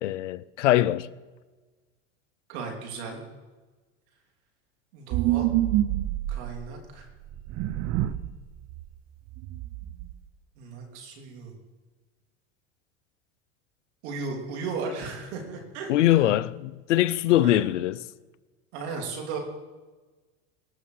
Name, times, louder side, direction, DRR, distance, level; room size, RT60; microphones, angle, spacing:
voice 1, 0.0-1.1 15.9-18.0, left 14 dB, 85° left, 0.6 m, -22 dB
voice 2, 2.5-3.2 4.9-5.5 6.3-7.1 10.6-11.5 14.0-15.9 17.3-17.6 18.7-19.4, right 4 dB, 70° right, 3.3 m, -35 dB
sound 1, 5.1-6.6 7.3-8.3 8.7-8.8 9.3-10.1, right 14 dB, 50° right, 0.8 m, -27 dB
20.0 x 6.7 x 4.8 m
hypercardioid pair, 95°, 35 cm